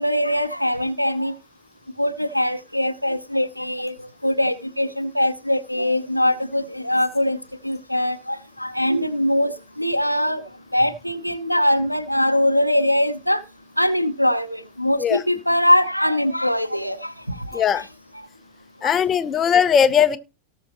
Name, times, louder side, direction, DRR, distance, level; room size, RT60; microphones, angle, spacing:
voice 1, 0.0-1.3 2.0-3.9 4.2-7.4 7.6-10.4 10.7-13.4 13.8-17.1 17.5-17.6, left 1 dB, 90° left, 0.8 m, -22 dB
voice 2, 18.8-20.2, left 8 dB, 25° left, 0.8 m, -18 dB
18.0 x 6.2 x 3.0 m
figure-of-eight pair, 90°, 0 cm